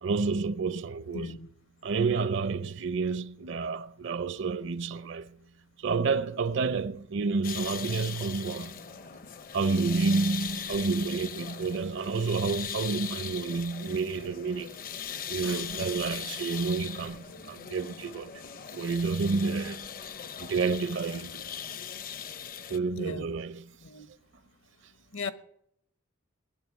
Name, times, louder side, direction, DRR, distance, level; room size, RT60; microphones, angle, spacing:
voice 1, 0.0-1.4 1.8-5.4 5.8-8.8 9.5-14.8 15.3-18.4 18.7-19.9 20.4-21.4 22.7-23.7, right 4 dB, 60° right, 0.6 m, -29 dB
voice 2, 1.1-1.5 23.0-23.3 23.8-24.1 25.1-25.3, left 3 dB, 70° left, 1.2 m, -37 dB
sound 1, 7.4-22.8, left 8 dB, 40° left, 0.6 m, -40 dB
19.0 x 7.7 x 9.8 m
head